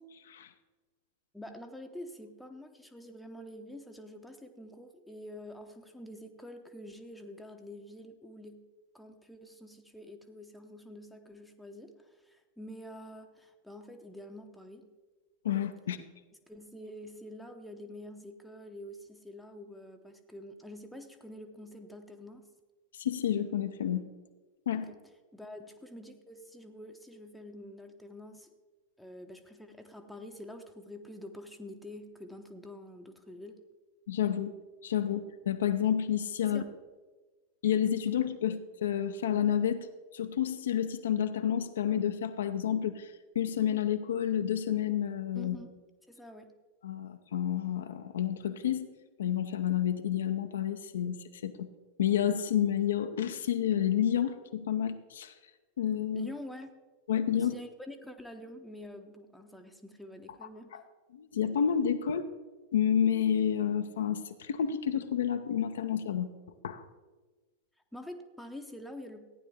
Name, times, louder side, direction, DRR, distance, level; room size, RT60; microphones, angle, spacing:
voice 1, 0.1-0.5 15.4-16.0 22.9-24.1 24.7-24.8 34.1-34.6 34.8-36.6 37.6-45.6 46.8-48.9 49.2-51.7 52.0-55.3 55.8-56.3 57.1-57.5 60.7-60.8 61.1-62.2 62.7-66.3 66.6-66.8, left 9 dB, 65° left, 8 dB, 0.6 m, -30 dB
voice 2, 1.3-8.6 8.9-14.9 16.5-22.5 24.7-25.0 25.3-28.5 29.0-33.6 36.4-36.7 45.3-45.8 46.1-46.5 56.1-56.7 57.3-60.8 67.9-69.3, left 1 dB, ahead, 4 dB, 0.8 m, -47 dB
15.0 x 9.8 x 3.5 m, 1.3 s
figure-of-eight pair, 90°, 0 cm